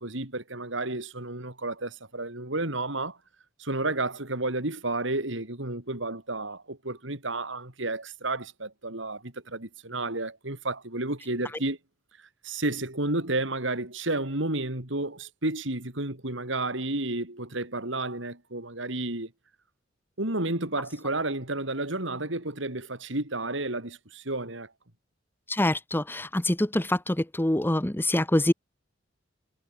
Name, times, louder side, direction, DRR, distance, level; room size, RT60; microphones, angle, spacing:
voice 1, 0.0-3.2 3.6-11.8 12.4-19.3 20.2-24.7, right 2 dB, 65° right, 4.1 m, -31 dB
voice 2, 25.5-28.5, left 1 dB, 10° left, 0.9 m, -25 dB
head